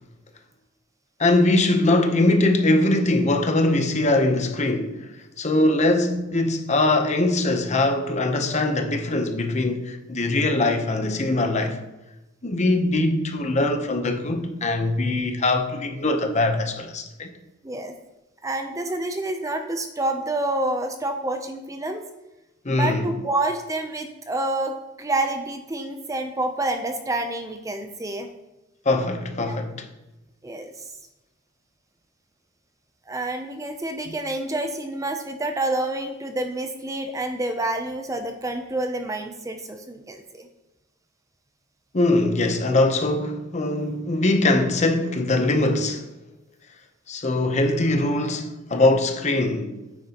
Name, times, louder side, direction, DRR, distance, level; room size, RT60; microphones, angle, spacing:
voice 1, 1.2-5.1 5.4-11.8 12.4-17.3 22.6-23.1 28.8-29.9 34.1-34.2 41.9-46.1 47.1-49.8, left 2 dB, 35° left, 0.8 m, -22 dB
voice 2, 18.4-22.0 22.7-28.3 29.5-29.6 30.4-30.7 33.1-40.5, right 2 dB, 15° right, 0.5 m, -28 dB
9.2 x 9.2 x 2.9 m
head